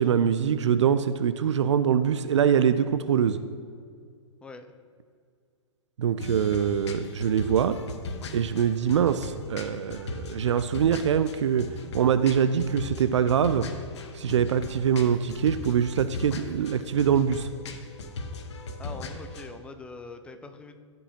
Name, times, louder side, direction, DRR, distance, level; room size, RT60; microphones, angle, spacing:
voice 1, 0.0-3.4 6.0-7.8 8.3-11.7 11.9-13.7 14.1-17.5, right 8 dB, 70° right, 12 dB, 0.4 m, -24 dB
sound 1, 6.2-19.5, left 3 dB, 65° left, 1.0 m, -38 dB
voice 2, 18.8-20.8, left 3 dB, 5° left, 8 dB, 0.4 m, -43 dB
14.0 x 5.4 x 2.8 m, 2.1 s
figure-of-eight pair, 115°, 16 cm